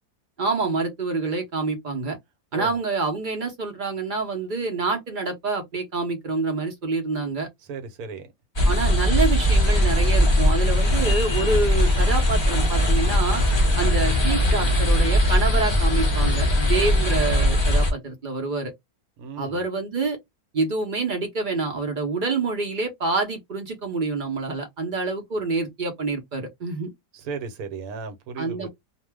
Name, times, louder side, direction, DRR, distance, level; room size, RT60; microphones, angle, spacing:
voice 1, 0.4-2.2 2.5-7.5 8.6-13.4 13.8-18.7 19.4-20.2 20.5-26.9 28.4-28.7, right 3 dB, 50° right, 0.6 m, -27 dB
voice 2, 7.7-8.3 19.2-19.6 27.1-28.7, right 5 dB, 70° right, 1.2 m, -35 dB
sound 1, 8.6-17.9, left 1 dB, 30° left, 0.5 m, -20 dB
2.6 x 2.1 x 3.3 m
omnidirectional pair, 1.7 m